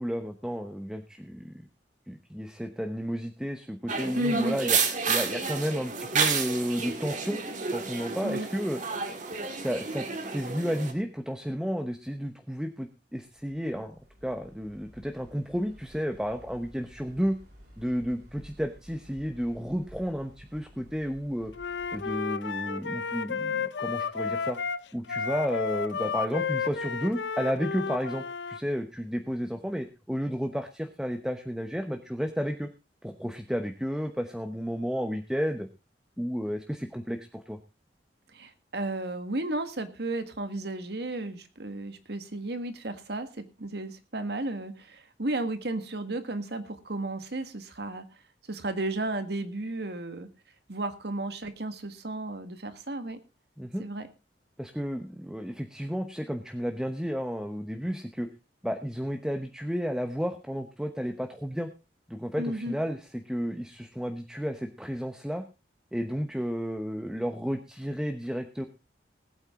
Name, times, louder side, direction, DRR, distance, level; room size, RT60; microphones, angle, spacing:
voice 1, 0.0-1.6 2.1-4.8 5.1-7.4 7.7-8.8 9.6-10.1 10.3-14.0 14.2-17.4 17.8-21.5 21.9-24.6 24.9-32.7 33.0-35.7 36.2-37.6 53.6-53.8 54.6-58.3 58.6-61.7 62.1-65.4 65.9-68.7, equal, 5° right, 6 dB, 0.9 m, -32 dB
sound 1, 3.9-10.9, right 5 dB, 45° right, 2.1 m, -30 dB
voice 2, 4.1-4.6 8.2-8.5 38.3-48.0 48.5-50.3 50.7-53.2 53.8-54.1 62.4-62.8, right 2 dB, 65° right, 9 dB, 1.7 m, -33 dB
sound 2, 13.2-22.1, equal, 85° right, 6.7 m, -53 dB
Wind instrument woodwind instrument, 21.5-28.6, left 5 dB, 90° left, 0.7 m, -32 dB
19.5 x 8.9 x 3.7 m, 0.29 s
head